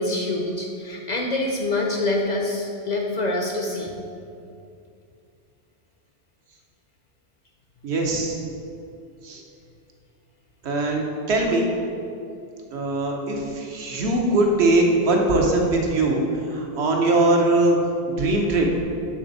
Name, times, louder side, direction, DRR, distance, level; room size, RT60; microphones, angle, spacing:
voice 1, 0.0-3.9, left 2 dB, 55° left, 1 dB, 0.5 m, -25 dB
voice 2, 7.8-8.4 9.2-9.4 10.6-11.7 12.7-17.8 18.1-18.8, right 2 dB, 85° right, 1 dB, 1.0 m, -21 dB
7.7 x 3.4 x 3.9 m, 2.5 s
omnidirectional pair, 1.1 m